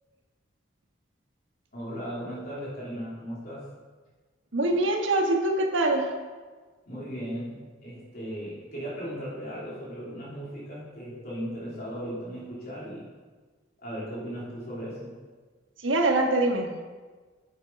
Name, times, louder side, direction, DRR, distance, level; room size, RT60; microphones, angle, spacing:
voice 1, 1.7-3.7 6.9-7.5 7.8-13.1 13.8-15.1, equal, 50° left, -8 dB, 3.2 m, -37 dB
voice 2, 4.5-6.1 15.8-16.7, right 2 dB, 75° right, 3 dB, 1.3 m, -24 dB
8.2 x 7.2 x 5.2 m, 1.4 s
head